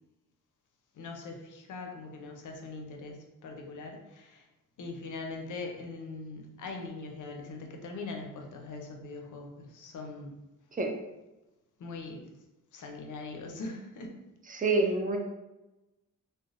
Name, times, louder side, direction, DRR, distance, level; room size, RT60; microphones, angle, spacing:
voice 1, 0.9-4.5 4.8-10.3 11.8-12.3 12.7-14.1, left 3 dB, 60° left, 2 dB, 0.6 m, -41 dB
voice 2, 14.5-15.2, right 3 dB, 25° right, 3 dB, 0.4 m, -27 dB
3.2 x 2.1 x 2.4 m, 1.0 s
cardioid pair, 90°, 35 cm